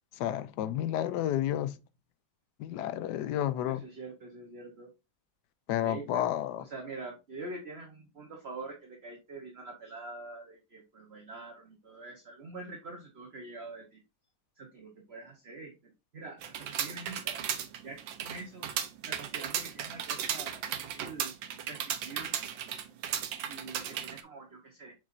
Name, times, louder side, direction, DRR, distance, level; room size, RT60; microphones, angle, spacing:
voice 1, 0.2-1.7 2.6-3.8 5.7-6.6, left 12 dB, 70° left, 1.1 m, -31 dB
voice 2, 3.7-4.9 5.8-6.2 6.6-14.0 14.6-17.5 17.8-18.7 19.1-21.3 21.7-22.3 23.5-24.9, right 3 dB, 40° right, 1.1 m, -45 dB
sound 1, 16.4-24.2, right 9 dB, 75° right, 1.5 m, -35 dB
7.0 x 5.2 x 2.6 m
omnidirectional pair, 2.1 m